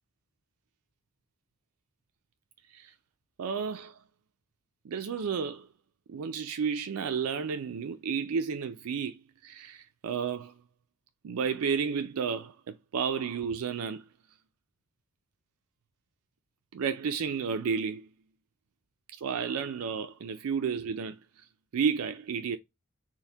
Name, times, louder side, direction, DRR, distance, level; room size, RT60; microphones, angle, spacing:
voice 1, 3.4-4.0 4.8-5.7 6.1-10.5 11.2-14.0 16.7-18.1 19.2-21.2 21.7-22.6, right 6 dB, 90° right, 0.4 m, -32 dB
4.5 x 2.1 x 3.3 m
head